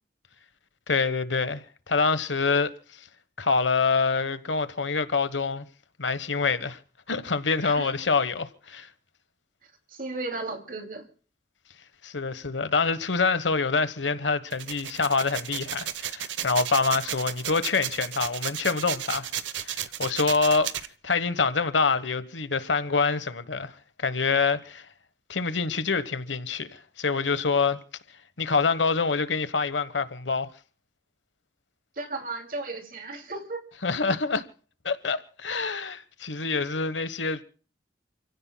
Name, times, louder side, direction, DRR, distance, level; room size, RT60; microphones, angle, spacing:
voice 1, 0.9-2.7 3.4-5.6 6.0-6.8 7.1-8.9 12.0-19.3 19.6-20.7 21.0-23.7 24.0-24.9 25.3-27.8 28.4-30.5 33.8-34.4 34.8-37.4, left 4 dB, 90° left, 1.2 m, -26 dB
voice 2, 7.6-7.9 9.9-11.1 32.0-33.6, right 3 dB, 50° right, 2.6 m, -35 dB
sound 1, 14.5-20.9, right 11 dB, 90° right, 0.9 m, -33 dB
29.0 x 16.5 x 2.2 m
head